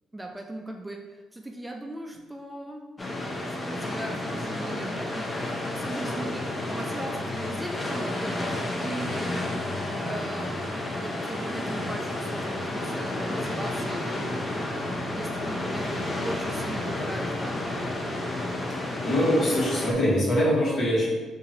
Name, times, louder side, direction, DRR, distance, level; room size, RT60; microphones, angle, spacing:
voice 1, 0.1-2.8 3.5-10.6 10.9-14.5 15.0-17.8, right 1 dB, 10° right, 2 dB, 0.3 m, -38 dB
sound 1, 3.0-19.9, left 1 dB, 25° left, 0.6 m, -31 dB
voice 2, 18.9-21.1, equal, 55° left, -4 dB, 1.2 m, -23 dB
2.9 x 2.6 x 4.1 m, 1.3 s
cardioid pair, 90°, 0 cm